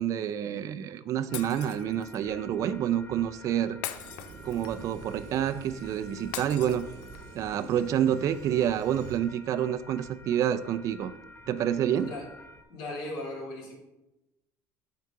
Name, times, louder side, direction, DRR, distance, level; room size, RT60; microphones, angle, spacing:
voice 1, 0.0-3.8 4.4-6.9 7.3-11.1 11.5-12.1, right 10 dB, 50° right, 11 dB, 0.4 m, -28 dB
Shatter, 1.3-2.2 3.8-4.9 6.3-7.3, left 12 dB, 90° left, 0.4 m, -40 dB
sound 1, 1.3-12.6, left 2 dB, 25° left, 0.5 m, -51 dB
sound 2, 3.9-9.2, right 5 dB, 70° right, 1.0 m, -47 dB
voice 2, 11.9-12.3 12.7-13.7, left 2 dB, 70° left, -3 dB, 2.2 m, -37 dB
4.7 x 3.7 x 5.7 m, 0.93 s
supercardioid pair, 110°, 7 cm